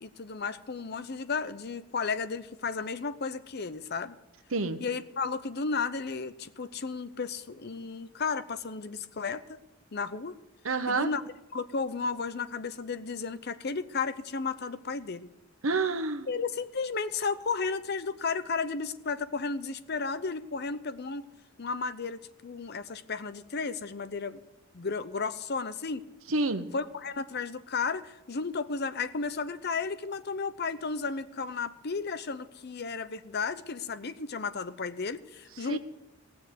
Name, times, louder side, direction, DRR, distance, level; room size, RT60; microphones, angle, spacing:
voice 1, 0.0-4.2 4.8-9.6 9.9-10.4 10.9-11.2 11.5-15.3 16.3-21.3 21.6-24.4 24.7-26.0 26.7-35.8, left 4 dB, 55° left, 13 dB, 0.7 m, -33 dB
voice 2, 10.6-11.1 15.6-16.3 26.3-26.7 35.7-35.8, right 3 dB, 90° right, 9 dB, 1.1 m, -28 dB
18.0 x 7.0 x 8.0 m, 0.95 s
head